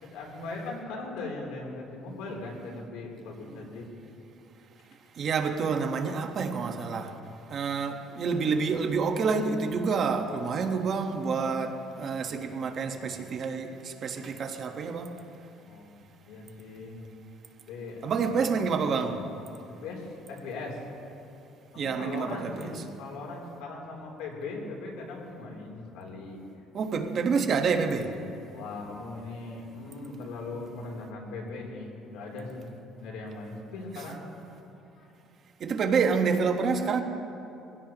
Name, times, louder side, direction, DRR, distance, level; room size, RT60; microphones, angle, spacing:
voice 1, 0.0-3.9 15.7-15.9 16.3-17.0 17.7-18.1 19.8-20.8 21.8-26.4 28.5-32.7 33.0-34.2 34.5-34.7 34.9-35.1, left 3 dB, 90° left, 3.2 m, -39 dB
voice 2, 5.2-7.1 7.5-15.1 18.0-19.2 21.8-22.7 26.7-28.1 35.6-37.0, right 5 dB, 45° right, 1.3 m, -28 dB
22.5 x 16.5 x 3.0 m
cardioid pair, 110°, 0 cm